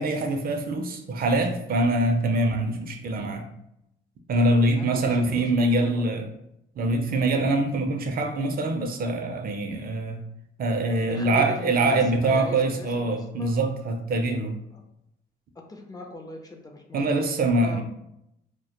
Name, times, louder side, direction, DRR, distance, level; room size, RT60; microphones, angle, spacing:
voice 1, 0.0-3.5 4.3-6.3 6.8-10.2 10.6-14.6 16.9-17.8, right 2 dB, 50° right, 5 dB, 0.4 m, -24 dB
voice 2, 4.7-6.1 10.9-13.5 14.7-14.8 15.7-17.2 17.5-17.8, left 2 dB, 20° left, 2 dB, 0.4 m, -39 dB
2.1 x 2.1 x 2.8 m, 0.80 s
cardioid pair, 90°, 20 cm